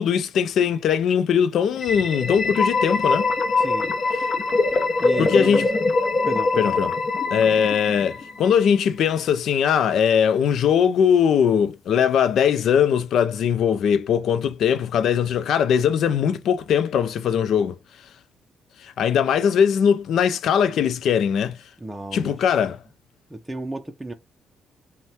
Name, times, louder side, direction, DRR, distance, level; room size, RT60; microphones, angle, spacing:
voice 1, 0.0-3.3 5.2-5.7 6.6-6.9 7.3-17.8 18.8-21.6 22.1-22.8, left 8 dB, 70° left, 0.5 m, -20 dB
sound 1, 1.8-8.5, left 3 dB, 40° left, 0.8 m, -23 dB
voice 2, 3.6-3.9 5.0-5.7 6.3-6.9 21.8-22.4 23.3-24.1, right 2 dB, 10° right, 0.5 m, -33 dB
5.3 x 2.2 x 3.5 m
cardioid pair, 90°, 0 cm